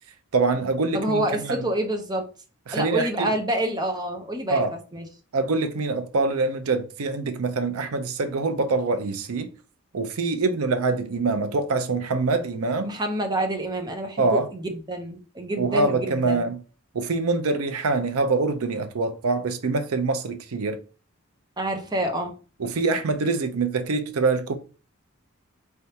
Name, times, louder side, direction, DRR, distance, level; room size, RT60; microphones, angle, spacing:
voice 1, 0.3-1.7 2.7-3.3 4.5-4.7 5.3-9.5 9.9-13.0 14.2-14.5 15.6-16.6 16.9-20.8 22.6-24.6, right 3 dB, 80° right, 0.6 m, -24 dB
voice 2, 0.9-2.3 2.7-4.6 4.9-5.1 12.8-16.4 21.6-22.3, right 1 dB, 20° right, 0.6 m, -27 dB
4.7 x 3.3 x 2.8 m
head